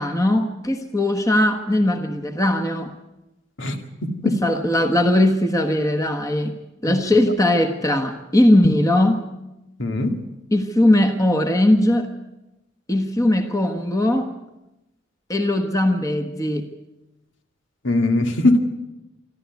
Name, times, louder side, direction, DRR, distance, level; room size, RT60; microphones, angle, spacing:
voice 1, 0.0-2.9 4.2-6.6 6.8-9.2 10.5-12.1 12.9-14.3 15.3-16.7, left 1 dB, 15° left, 7 dB, 1.3 m, -19 dB
voice 2, 3.6-4.4 6.9-7.0 9.8-10.2 17.8-18.6, left 2 dB, 80° left, 5 dB, 2.3 m, -21 dB
26.5 x 13.0 x 9.4 m, 0.98 s
head